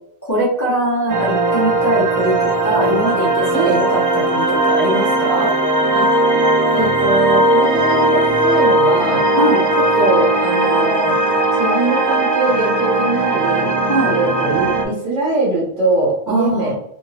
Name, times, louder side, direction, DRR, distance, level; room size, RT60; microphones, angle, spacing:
voice 1, 0.2-5.5 9.3-9.6 13.9-14.1 16.3-16.7, right 1 dB, 15° left, -8 dB, 0.9 m, -21 dB
sound 1, 1.1-14.8, right 2 dB, 30° right, 0.4 m, -17 dB
voice 2, 6.7-9.3 9.7-11.2 11.5-13.7 14.1-16.7, right 2 dB, 55° right, -5 dB, 1.0 m, -21 dB
2.6 x 2.6 x 3.2 m, 0.77 s
omnidirectional pair, 1.1 m